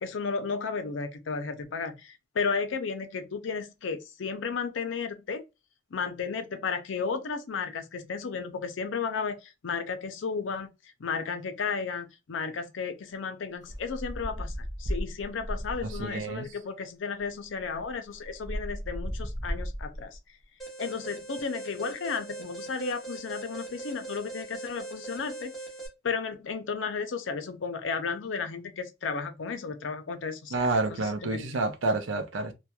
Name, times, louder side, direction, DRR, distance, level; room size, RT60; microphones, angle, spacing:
voice 1, 0.0-5.4 5.9-10.7 11.0-14.5 14.8-20.2 20.8-25.5 26.0-30.7 31.0-31.4, left 5 dB, 75° left, 0.5 m, -33 dB
sound 1, 13.6-16.2 17.2-17.3 17.5-20.2, equal, 20° right, 0.4 m, -35 dB
voice 2, 15.8-16.5 30.5-32.5, right 2 dB, 80° right, 0.5 m, -29 dB
Alarm, 20.6-25.9, right 3 dB, ahead, 1.0 m, -41 dB
2.9 x 2.2 x 2.2 m
head